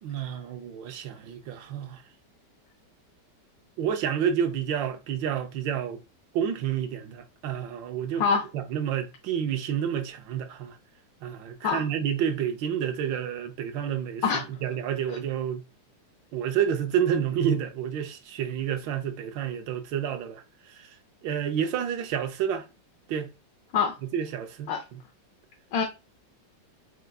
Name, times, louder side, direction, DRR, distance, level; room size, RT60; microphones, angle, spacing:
voice 1, 0.0-2.0 3.8-6.0 6.3-8.2 8.5-10.8 11.2-14.2 14.6-15.6 16.3-20.4 20.7-20.9 21.2-22.6 23.1-23.3 24.0-25.0, right 8 dB, 85° right, 1.4 m, -29 dB
voice 2, 8.2-8.4 11.6-11.8 14.2-14.4 23.7-23.9 24.7-24.8 25.7-25.8, left 6 dB, 85° left, 1.5 m, -24 dB
4.5 x 3.8 x 2.2 m
omnidirectional pair, 2.0 m